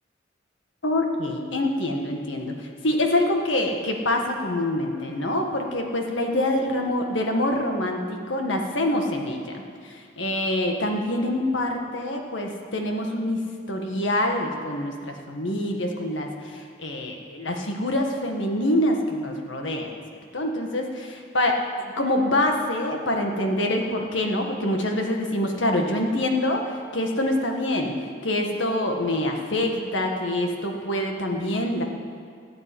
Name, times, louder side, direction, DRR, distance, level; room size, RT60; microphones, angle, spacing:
voice 1, 0.8-13.4 13.7-19.9 20.3-31.8, left 1 dB, 85° left, 2 dB, 1.9 m, -25 dB
14.5 x 8.9 x 8.6 m, 2.1 s
head